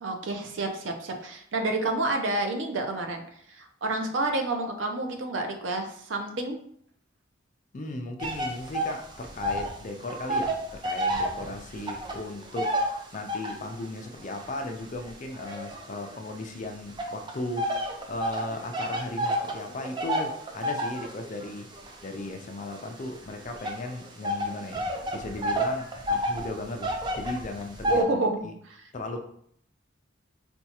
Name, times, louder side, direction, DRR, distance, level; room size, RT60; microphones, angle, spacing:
voice 1, 0.0-3.2 3.5-6.6 11.7-11.9 27.9-28.8, right 2 dB, 75° right, 4 dB, 0.6 m, -29 dB
voice 2, 7.7-12.7 13.1-17.7 18.1-21.7 22.0-28.1 28.4-28.5 28.9-29.2, left 2 dB, 40° left, 5 dB, 0.4 m, -36 dB
sound 1, 8.2-9.8 10.0-13.7 14.3-16.4 17.0-28.0, equal, 25° right, 0.4 m, -30 dB
4.3 x 2.3 x 2.8 m, 0.65 s
head